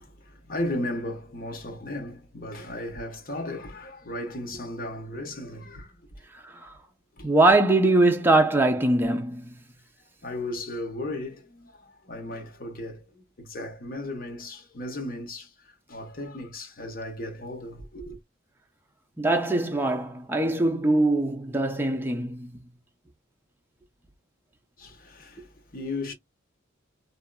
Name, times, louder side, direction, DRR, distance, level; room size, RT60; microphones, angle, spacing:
voice 1, 0.0-6.0 6.5-6.6 7.2-7.3 10.2-18.2 24.8-26.1, left 1 dB, 45° left, 1.0 m, -36 dB
voice 2, 6.4-6.7 7.2-9.5 19.2-22.5, right 2 dB, 10° right, 0.4 m, -22 dB
2.7 x 2.4 x 2.2 m
head